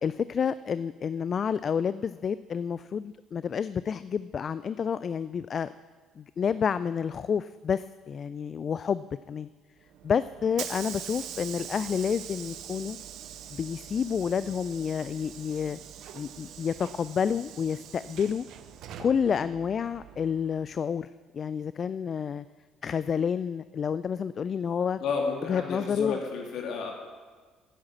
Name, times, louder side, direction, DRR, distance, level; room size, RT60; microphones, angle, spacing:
voice 1, 0.0-5.7 6.2-9.5 10.0-13.0 13.5-15.8 16.1-18.5 19.0-21.1 21.3-22.4 22.8-25.0 25.5-26.2, left 7 dB, 45° left, 15 dB, 0.3 m, -29 dB
Hiss / Sliding door, 9.9-20.7, right 9 dB, 65° right, 0.8 m, -43 dB
voice 2, 25.0-26.9, left 5 dB, 65° left, 1 dB, 2.7 m, -31 dB
10.0 x 9.6 x 7.5 m, 1.4 s
hypercardioid pair, 60°, 0 cm